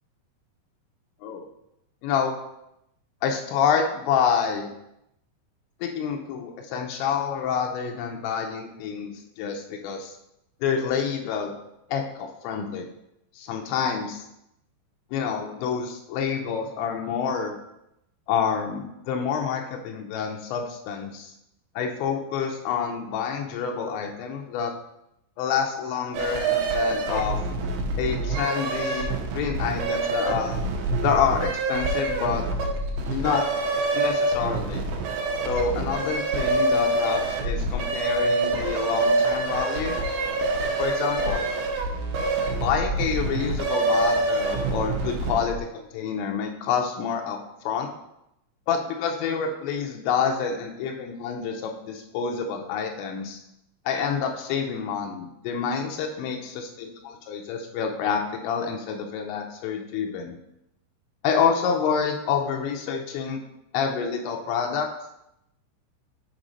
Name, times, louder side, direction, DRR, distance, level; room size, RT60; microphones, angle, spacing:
voice 1, 2.0-2.4 3.2-4.7 5.8-10.2 10.6-11.5 11.9-12.9 13.4-14.2 15.1-17.6 18.3-21.3 21.8-24.7 25.4-27.4 28.0-30.6 31.0-32.5 33.1-33.5 33.9-34.8 35.5-40.0 40.8-41.5 42.6-47.9 48.7-53.4 53.9-60.4 61.2-63.4 63.7-64.9, left 6 dB, 90° left, 2 dB, 3.0 m, -27 dB
sound 1, 26.1-45.6, right 2 dB, 90° right, 3.2 m, -26 dB
7.5 x 4.1 x 5.1 m, 0.83 s
omnidirectional pair, 5.0 m